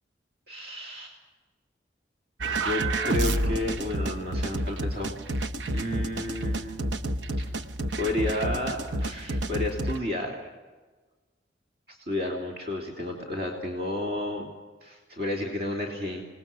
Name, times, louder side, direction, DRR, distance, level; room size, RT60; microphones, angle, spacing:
voice 1, 0.5-1.1 2.6-5.4 5.7-6.8 7.4-7.5 8.0-10.4 11.9-14.5 14.8-16.2, left 1 dB, 55° right, 0 dB, 3.2 m, -32 dB
sound 1, 2.4-10.0, right 1 dB, 90° right, 0.9 m, -29 dB
28.0 x 19.5 x 6.1 m, 1.3 s
head